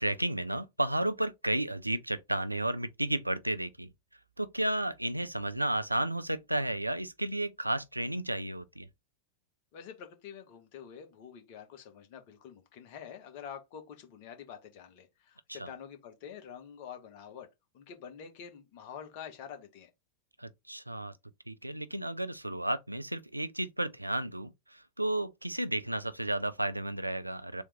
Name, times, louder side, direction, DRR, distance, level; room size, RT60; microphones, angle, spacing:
voice 1, 0.0-3.9 4.4-8.9 15.5-15.7 20.4-21.1 21.5-27.6, right 1 dB, 85° right, 0.3 m, -33 dB
voice 2, 9.7-17.5 17.7-19.9, left 8 dB, 45° left, 1.1 m, -47 dB
3.5 x 3.0 x 3.4 m
figure-of-eight pair, 90°, 0 cm